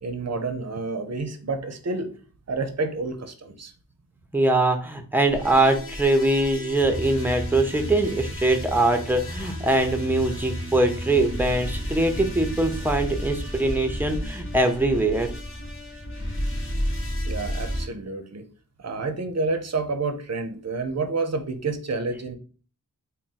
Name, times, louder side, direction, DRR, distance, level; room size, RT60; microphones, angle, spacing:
voice 1, 0.0-2.1 2.5-3.7 17.2-18.5 18.8-22.3, right 3 dB, 45° right, 7 dB, 0.6 m, -29 dB
voice 2, 4.3-15.3, right 2 dB, 5° right, 6 dB, 0.6 m, -22 dB
sound 1, 5.3-17.9, equal, 35° left, 1.1 m, -32 dB
3.5 x 2.2 x 4.1 m, 0.39 s
wide cardioid pair, 45°, 36 cm